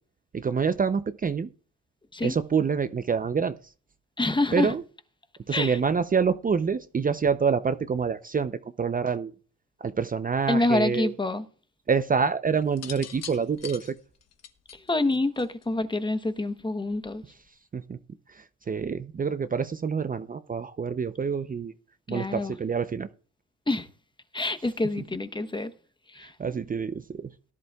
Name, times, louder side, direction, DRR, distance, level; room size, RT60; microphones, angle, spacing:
voice 1, 0.3-1.5 2.2-3.5 4.5-4.8 5.5-8.5 8.8-9.3 9.8-11.1 11.9-13.9 17.7-18.0 18.3-21.7 22.1-23.1 26.2-27.3, right 6 dB, 30° right, 0.6 m, -27 dB
voice 2, 4.2-4.7 5.5-5.8 10.5-11.4 14.9-17.2 22.1-22.5 23.7-23.9 24.3-25.7 26.1-26.3, left 2 dB, 15° left, 1.0 m, -27 dB
sound 1, 12.7-15.8 16.9-17.3, left 8 dB, 60° left, 1.1 m, -43 dB
18.0 x 11.0 x 2.4 m
cardioid pair, 90°, 30 cm